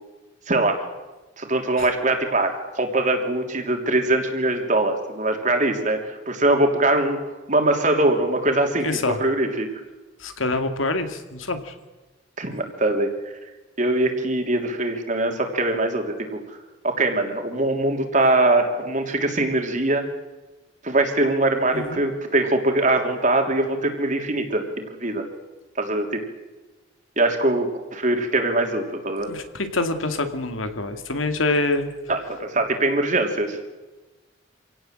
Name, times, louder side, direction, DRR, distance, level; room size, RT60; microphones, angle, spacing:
voice 1, 0.5-0.8 1.4-7.2 7.5-9.7 12.4-13.1 13.8-16.6 16.8-20.1 20.8-25.3 25.7-26.2 27.2-29.3 32.1-33.6, right 2 dB, 40° right, 4 dB, 3.2 m, -22 dB
voice 2, 8.8-9.2 10.2-11.7 21.7-22.0 29.3-31.9, left 2 dB, 85° left, 8 dB, 2.3 m, -26 dB
27.0 x 17.5 x 7.7 m, 1.2 s
head